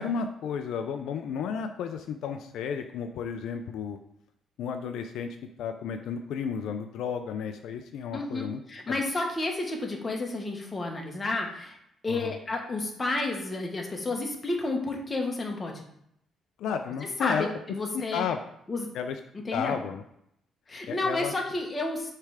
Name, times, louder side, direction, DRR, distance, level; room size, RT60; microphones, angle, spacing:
voice 1, 0.0-4.0 4.6-8.6 12.1-12.4 16.6-17.5 17.9-18.4 18.9-19.2 19.5-20.0 20.9-21.3, left 6 dB, 80° left, 6 dB, 0.4 m, -32 dB
voice 2, 8.1-11.8 12.0-15.8 17.0-18.3 18.7-18.9 19.3-19.8 20.7-22.1, left 2 dB, 25° left, 1 dB, 1.4 m, -31 dB
6.5 x 3.3 x 4.9 m, 0.74 s
cardioid pair, 90°, 0 cm